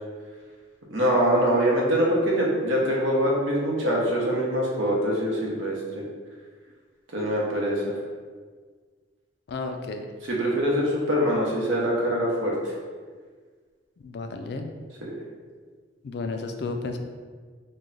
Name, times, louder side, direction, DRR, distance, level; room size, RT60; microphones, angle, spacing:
voice 1, 0.9-5.7 7.1-7.8 10.4-12.6 15.0-15.1, equal, 85° right, -3 dB, 0.8 m, -23 dB
voice 2, 9.5-10.1 14.0-14.7 16.0-17.0, left 3 dB, 55° left, 5 dB, 0.3 m, -32 dB
3.1 x 2.2 x 3.8 m, 1.5 s
head